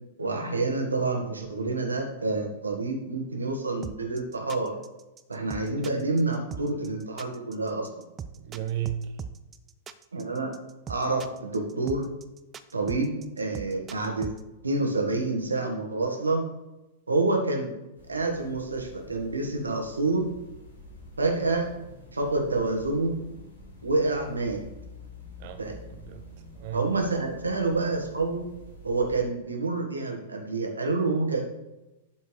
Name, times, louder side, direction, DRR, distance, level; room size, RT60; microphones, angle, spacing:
voice 1, 0.2-4.8 5.3-7.9 10.1-10.5 10.9-12.0 12.7-14.3 14.6-16.4 17.1-17.7 18.1-20.3 21.2-21.7 22.1-23.2 23.8-24.6 25.6-25.8 26.7-28.5 28.8-31.5, right 3 dB, 75° right, 2 dB, 1.6 m, -28 dB
sound 1, 3.8-14.4, right 7 dB, 20° right, 0.5 m, -40 dB
voice 2, 8.4-9.2 25.4-26.2 26.5-26.9, right 11 dB, 45° right, 8 dB, 0.8 m, -34 dB
sound 2, 17.9-29.3, left 1 dB, 75° left, 2.9 m, -48 dB
12.0 x 4.4 x 3.3 m, 1.0 s
figure-of-eight pair, 100°, 0 cm